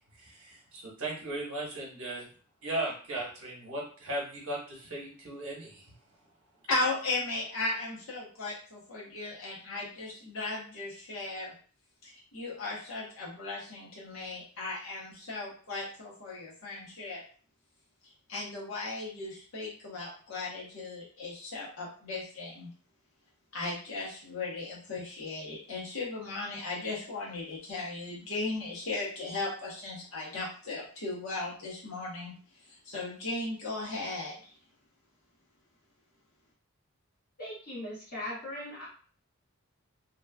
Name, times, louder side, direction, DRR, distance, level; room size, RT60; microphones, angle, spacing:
voice 1, 0.2-2.3 2.6-5.8, right 1 dB, 70° right, -2 dB, 1.0 m, -37 dB
voice 2, 6.7-11.5 12.0-17.2 18.3-22.7 23.5-32.3 32.7-34.5, left 2 dB, 60° left, -5 dB, 0.9 m, -36 dB
voice 3, 37.4-38.9, left 1 dB, 45° left, -8 dB, 1.2 m, -39 dB
2.9 x 2.3 x 2.2 m, 0.42 s
head